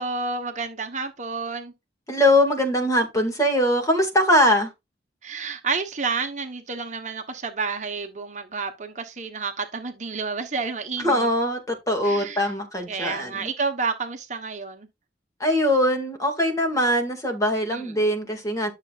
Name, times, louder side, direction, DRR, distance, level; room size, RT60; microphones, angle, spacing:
voice 1, 0.0-1.7 5.2-11.3 12.0-12.4 12.9-14.9 17.7-17.9, right 4 dB, 40° right, 1.1 m, -30 dB
voice 2, 2.1-4.7 11.0-13.5 15.4-18.7, left 1 dB, 20° left, 2.1 m, -22 dB
11.5 x 6.7 x 2.5 m
head